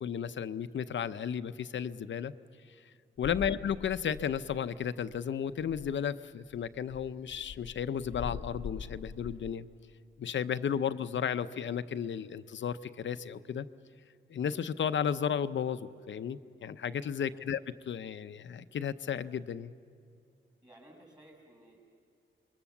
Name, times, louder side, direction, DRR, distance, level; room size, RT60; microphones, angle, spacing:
voice 1, 0.0-2.3 3.2-9.7 10.2-13.7 14.3-17.6 17.9-19.7, left 8 dB, 65° left, 12 dB, 0.7 m, -34 dB
sound 1, 3.2-4.9 5.1-5.2 5.5-6.0 6.5-9.5, left 6 dB, 90° left, 1.1 m, -44 dB
voice 2, 20.6-21.8, right 1 dB, 20° right, 0 dB, 6.6 m, -57 dB
27.0 x 22.5 x 7.2 m, 2.5 s
wide cardioid pair, 140°, 20 cm